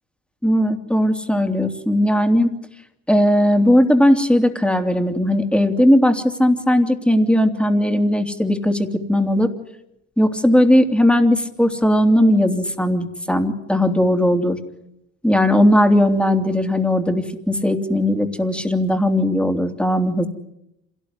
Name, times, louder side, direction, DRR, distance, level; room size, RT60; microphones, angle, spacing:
voice 1, 0.4-2.5 3.1-9.5 10.2-14.6 15.2-20.3, left 1 dB, 5° left, 5 dB, 3.2 m, -17 dB
27.0 x 18.5 x 9.9 m, 0.85 s
cardioid pair, 90°, 30 cm